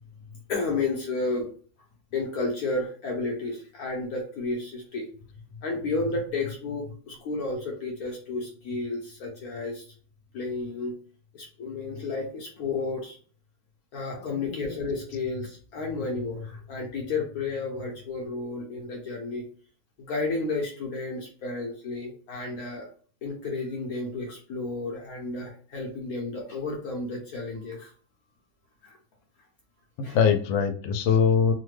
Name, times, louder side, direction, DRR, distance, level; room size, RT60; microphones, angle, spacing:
voice 1, 0.5-1.5 2.1-5.0 5.6-9.8 10.3-10.9 11.3-13.2 13.9-19.4 20.1-22.9 23.2-27.9 28.8-29.0 30.0-30.2, left 3 dB, 65° left, 0 dB, 1.0 m, -32 dB
voice 2, 14.3-14.8 30.1-31.5, left 6 dB, 90° left, 7 dB, 1.3 m, -23 dB
3.2 x 2.1 x 3.1 m, 0.43 s
omnidirectional pair, 2.0 m